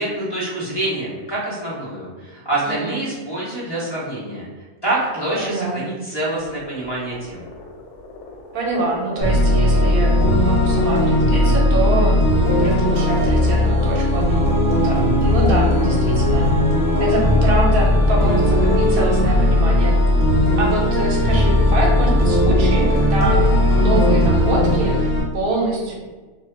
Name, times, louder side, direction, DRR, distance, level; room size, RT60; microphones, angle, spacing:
voice 1, 0.0-4.4 4.8-7.4, right 1 dB, 20° left, -8 dB, 1.0 m, -26 dB
voice 2, 2.6-3.0 5.4-5.8 8.5-16.5 17.0-20.0 20.6-25.9, right 2 dB, 75° right, -1 dB, 1.1 m, -25 dB
sound 1, 6.3-21.2, left 3 dB, 90° left, 1.1 m, -38 dB
sound 2, 9.2-25.2, left 1 dB, 50° left, 0.9 m, -17 dB
2.8 x 2.3 x 3.2 m, 1.3 s
omnidirectional pair, 1.6 m